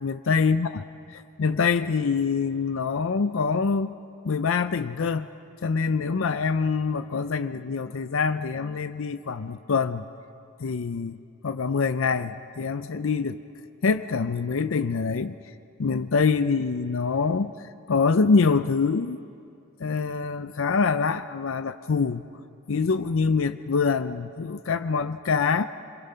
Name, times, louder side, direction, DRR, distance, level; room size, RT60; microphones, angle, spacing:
voice 1, 0.0-0.7 1.1-3.9 4.2-5.3 5.6-10.0 10.6-11.2 11.4-13.4 13.8-15.4 15.8-17.5 17.9-19.2 19.8-22.2 22.7-25.7, left 5 dB, 65° left, 11 dB, 0.5 m, -25 dB
27.5 x 23.0 x 5.6 m, 2.5 s
head